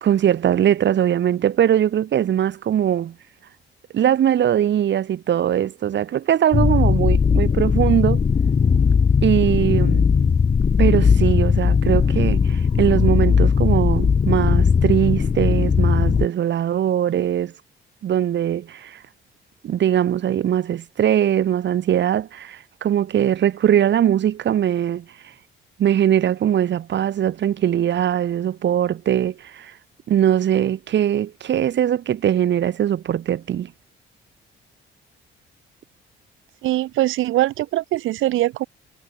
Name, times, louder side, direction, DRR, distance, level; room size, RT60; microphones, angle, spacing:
voice 1, 0.0-3.2 3.9-8.2 9.2-10.1 10.8-17.5 18.0-19.0 19.6-25.1 25.8-29.7 30.1-33.7, right 10 dB, 65° right, 3.6 m, -21 dB
sound 1, 6.5-16.3, left 6 dB, 35° left, 1.4 m, -18 dB
voice 2, 36.6-38.6, right 15 dB, 85° right, 1.3 m, -22 dB
cardioid pair, 90°, 20 cm